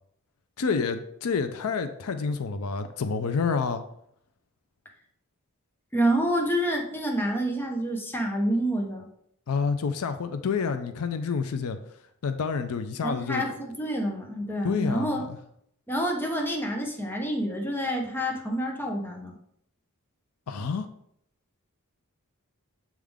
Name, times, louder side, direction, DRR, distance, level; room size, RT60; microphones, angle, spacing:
voice 1, 0.6-3.8 9.5-11.8 12.2-13.4 14.6-15.4 20.5-20.9, left 5 dB, 80° left, 9 dB, 0.5 m, -28 dB
voice 2, 5.9-9.1 13.0-15.2 15.9-19.3, right 1 dB, 10° left, 0 dB, 0.9 m, -28 dB
7.4 x 3.6 x 3.5 m, 0.72 s
head